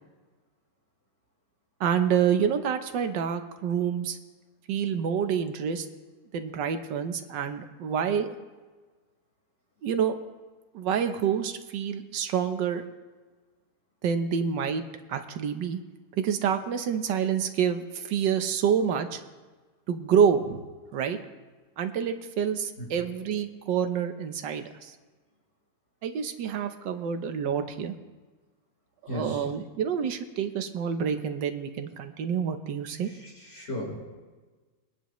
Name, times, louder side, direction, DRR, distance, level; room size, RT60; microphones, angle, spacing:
voice 1, 1.8-4.2 4.7-5.9 6.3-8.3 9.8-10.1 10.7-12.8 14.0-14.8 15.1-15.8 16.2-19.2 19.9-20.6 20.9-21.2 21.8-24.9 26.0-27.9 29.1-33.1, right 7 dB, 85° right, 8 dB, 1.5 m, -27 dB
voice 2, 29.1-29.4 33.2-34.0, left 1 dB, 40° left, -4 dB, 4.5 m, -35 dB
22.5 x 10.0 x 3.1 m, 1.3 s
omnidirectional pair, 1.9 m